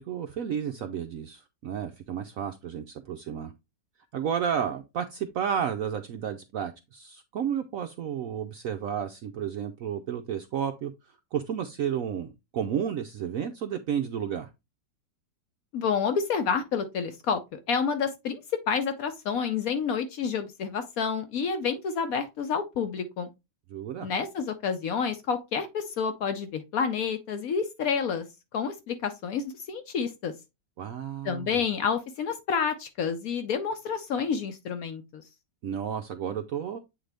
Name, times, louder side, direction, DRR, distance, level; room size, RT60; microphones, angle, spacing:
voice 1, 0.0-3.5 4.1-14.5 23.7-24.1 30.8-31.6 35.6-36.8, right 8 dB, 75° right, 0.7 m, -32 dB
voice 2, 15.7-18.4 18.7-23.3 24.0-28.2 28.5-30.3 31.2-35.2, left 6 dB, 65° left, 0.9 m, -29 dB
8.0 x 3.8 x 3.4 m
omnidirectional pair, 1.9 m